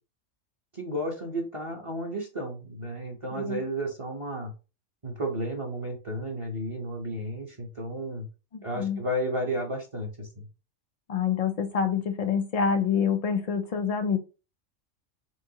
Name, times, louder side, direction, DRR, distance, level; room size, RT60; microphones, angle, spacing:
voice 1, 0.7-4.5 5.0-8.3 8.6-10.4, equal, 30° right, 0 dB, 0.9 m, -33 dB
voice 2, 8.5-9.0 11.1-14.2, left 6 dB, 75° left, 6 dB, 0.3 m, -27 dB
4.6 x 3.7 x 2.8 m, 0.32 s
omnidirectional pair, 1.3 m